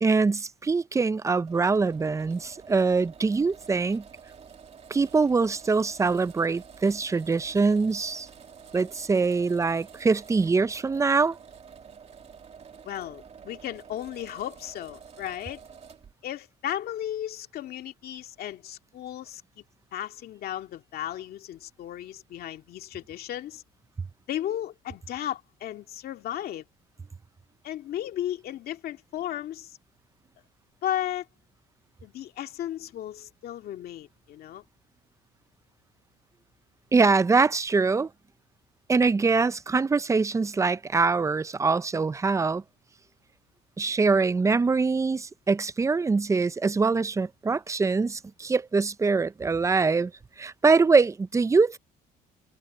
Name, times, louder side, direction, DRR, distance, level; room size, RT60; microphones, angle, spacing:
voice 1, 0.0-4.0 4.9-8.3 8.7-11.4 36.9-38.1 38.9-42.6 43.8-50.1 50.4-51.8, right 4 dB, 20° right, 0.6 m, -23 dB
sound 1, 1.5-16.1, right 6 dB, 40° right, 2.5 m, -49 dB
voice 2, 12.8-15.6 16.2-19.6 19.9-23.6 24.3-26.6 27.6-29.8 30.8-31.3 32.0-34.6, left 11 dB, 65° left, 2.3 m, -35 dB
cardioid pair, 110°, 17 cm